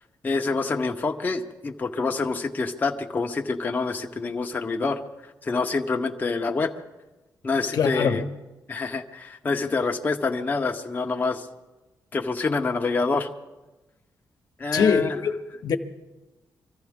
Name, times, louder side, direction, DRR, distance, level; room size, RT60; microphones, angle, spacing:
voice 1, 0.2-5.0 5.4-6.7 7.4-8.2 8.7-11.5 12.1-13.3 14.6-15.2, left 4 dB, 25° left, 0.8 m, -26 dB
voice 2, 7.7-8.3 14.7-15.8, left 6 dB, 70° left, 1.0 m, -23 dB
24.5 x 14.5 x 3.6 m
wide cardioid pair, 160°, 7 cm